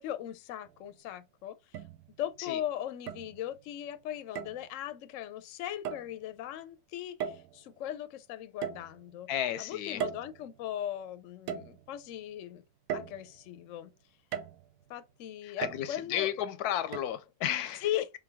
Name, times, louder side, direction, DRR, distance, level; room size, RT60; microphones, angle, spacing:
voice 1, 0.0-1.8 2.2-9.3 9.6-12.6 12.9-13.9 14.9-16.3 17.8-18.1, left 11 dB, 65° left, 0.9 m, -38 dB
sound 1, 0.7-0.8 1.7-2.4 3.1-3.7 4.4-4.7 5.8-6.2 7.2-7.7 8.6-9.3 10.0-10.9 11.5-12.2 12.9-13.6 14.3-14.8 15.6-16.2 16.9-17.0, right 8 dB, 70° right, 1.0 m, -38 dB
voice 2, 9.3-10.0 15.6-17.8, left 11 dB, 90° left, 1.1 m, -33 dB
3.5 x 3.4 x 3.3 m
omnidirectional pair, 1.6 m